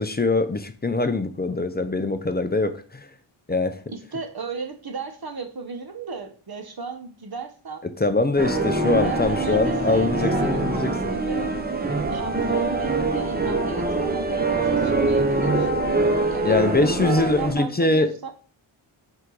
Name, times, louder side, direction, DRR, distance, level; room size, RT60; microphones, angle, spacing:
voice 1, 0.0-3.1 3.5-3.8 8.0-10.9 16.4-18.1, left 2 dB, 20° left, 0.5 m, -23 dB
voice 2, 3.9-7.8 9.0-11.5 12.1-15.7 16.3-18.3, right 4 dB, 50° right, 1.0 m, -35 dB
sound 1, 8.4-17.5, right 2 dB, 20° right, 0.8 m, -24 dB
5.4 x 4.8 x 3.9 m
wide cardioid pair, 115°, 49 cm